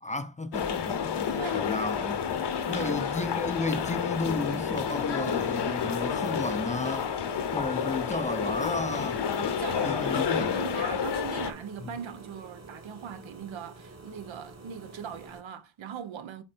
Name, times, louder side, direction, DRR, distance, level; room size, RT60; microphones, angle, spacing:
voice 1, 0.0-7.1 7.5-9.2 9.8-10.6, left 2 dB, 15° left, 0.5 m, -33 dB
sound 1, 0.5-11.5, left 7 dB, 60° left, 1.0 m, -30 dB
voice 2, 1.3-1.7 2.7-3.1 9.3-16.4, right 8 dB, 75° right, 1.1 m, -40 dB
sound 2, 2.1-15.4, right 3 dB, 35° right, 1.3 m, -48 dB
7.4 x 3.8 x 4.3 m
wide cardioid pair, 155°, 46 cm